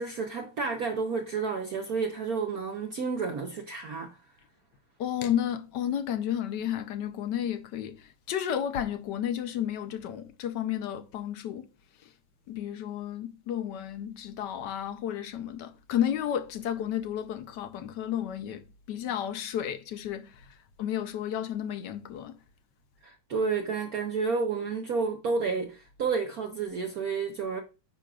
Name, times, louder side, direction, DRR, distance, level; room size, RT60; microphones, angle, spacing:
voice 1, 0.0-4.2 23.0-27.6, right 4 dB, 60° right, 1.0 m, -30 dB
voice 2, 5.0-11.7 12.0-12.1 12.5-22.4, left 10 dB, 70° left, 1.1 m, -32 dB
9.8 x 6.1 x 2.3 m
omnidirectional pair, 2.3 m